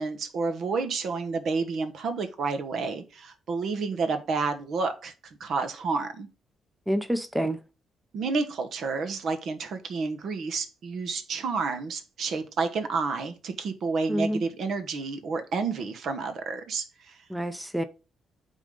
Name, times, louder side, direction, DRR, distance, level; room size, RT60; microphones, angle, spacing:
voice 1, 0.0-5.1 5.4-6.3 8.1-17.2, right 4 dB, 65° right, 1.2 m, -30 dB
voice 2, 6.9-7.6 14.1-14.4 17.3-17.8, equal, 5° right, 0.6 m, -27 dB
8.8 x 3.7 x 3.8 m
cardioid pair, 90°, 0 cm